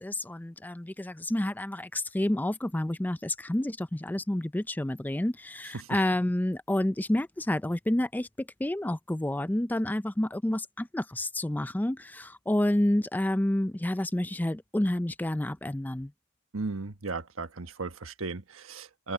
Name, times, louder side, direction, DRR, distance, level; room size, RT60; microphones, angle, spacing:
voice 1, 0.0-16.1, left 1 dB, 10° left, 0.4 m, -29 dB
voice 2, 16.5-19.1, right 3 dB, 85° right, 1.3 m, -36 dB
head